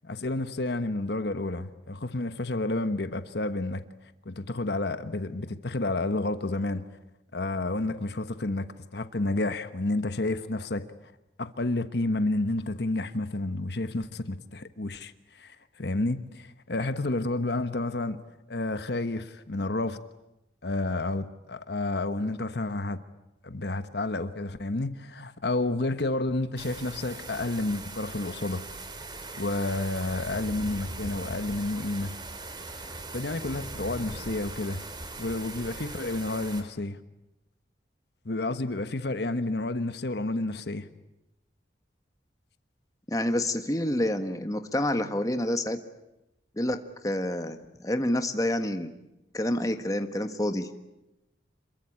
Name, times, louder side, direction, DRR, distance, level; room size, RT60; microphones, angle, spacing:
voice 1, 0.0-3.8 4.2-6.8 7.3-10.9 11.4-18.2 18.5-20.0 20.6-23.0 23.4-28.6 29.4-32.1 32.8-34.8 35.2-37.0 38.2-40.9, left 2 dB, 65° left, 1.2 m, -30 dB
sound 1, 26.6-36.6, right 2 dB, 25° right, 3.1 m, -40 dB
voice 2, 43.1-45.8 46.6-48.9 49.3-50.7, left 1 dB, 20° left, 1.5 m, -28 dB
27.5 x 22.5 x 8.7 m
head